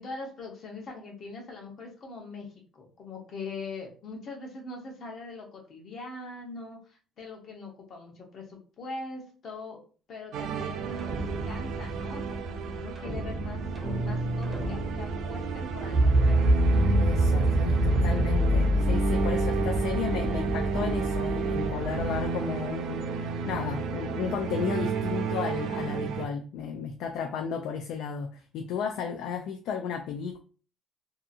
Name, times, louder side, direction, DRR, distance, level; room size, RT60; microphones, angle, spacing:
voice 1, 0.0-9.8 10.1-11.1 11.4-13.6 13.9-16.8, left 3 dB, 45° left, 1 dB, 0.9 m, -42 dB
sound 1, 10.3-26.3, right 5 dB, 70° right, 0.4 m, -32 dB
sound 2, 11.0-22.3, right 1 dB, 15° right, 0.6 m, -27 dB
voice 2, 17.0-30.4, left 6 dB, 75° left, 5 dB, 0.3 m, -34 dB
2.7 x 2.4 x 2.6 m, 0.38 s
cardioid pair, 155°, 0 cm